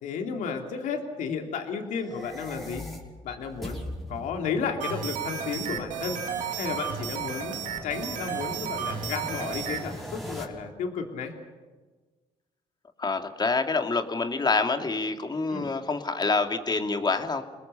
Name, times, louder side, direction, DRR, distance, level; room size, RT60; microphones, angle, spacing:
voice 1, 0.0-2.8 3.2-3.8 4.1-11.3 15.5-15.7, left 5 dB, 80° left, 4 dB, 3.0 m, -33 dB
sound 1, 1.9-10.4, equal, ahead, 5.7 m, -41 dB
sound 2, 4.8-9.8, right 8 dB, 75° right, 2.5 m, -33 dB
voice 2, 13.0-17.4, left 3 dB, 35° left, 5 dB, 2.6 m, -27 dB
28.5 x 20.0 x 7.0 m, 1.3 s
supercardioid pair, 70°, 13 cm